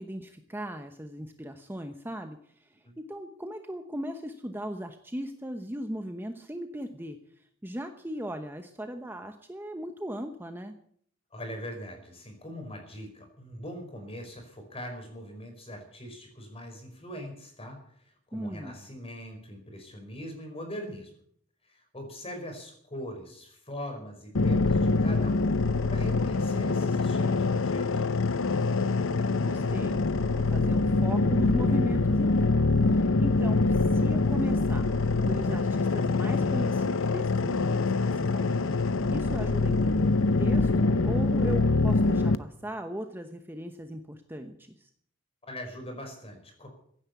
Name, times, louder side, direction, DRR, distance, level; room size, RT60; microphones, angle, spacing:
voice 1, 0.0-2.4 3.1-7.2 7.6-10.7 18.3-18.8 29.3-32.6 32.8-34.9 35.2-38.6 39.1-44.9, equal, 10° right, 6 dB, 1.0 m, -37 dB
voice 2, 11.3-21.1 21.6-25.5 25.9-28.2 45.4-46.7, equal, 30° left, 4 dB, 5.0 m, -41 dB
sound 1, 24.3-42.4, left 3 dB, 80° left, 0.7 m, -25 dB
16.0 x 9.8 x 8.3 m, 0.63 s
head